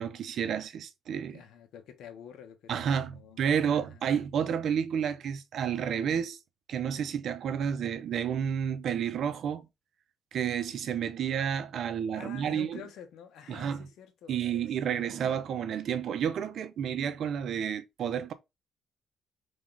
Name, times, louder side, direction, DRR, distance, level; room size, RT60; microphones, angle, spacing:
voice 1, 0.0-1.4 2.7-6.4 6.7-9.6 10.3-12.8 13.5-13.9 14.3-18.3, right 8 dB, 65° right, 0.7 m, -30 dB
voice 2, 1.3-4.0 12.1-15.2, left 8 dB, 80° left, 1.0 m, -49 dB
3.6 x 3.5 x 3.8 m
cardioid pair, 90°, 0 cm